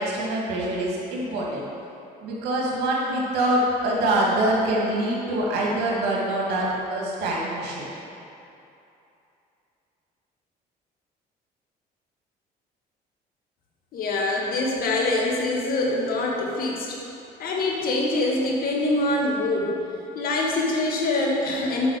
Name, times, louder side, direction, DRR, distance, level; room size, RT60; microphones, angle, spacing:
voice 1, 0.0-1.7 2.2-7.8, right 1 dB, 85° right, -3 dB, 2.2 m, -25 dB
voice 2, 13.9-17.0 17.4-19.7 20.2-21.9, left 2 dB, 60° left, -2 dB, 1.8 m, -24 dB
7.8 x 5.4 x 6.7 m, 2.7 s
cardioid pair, 110°, 17 cm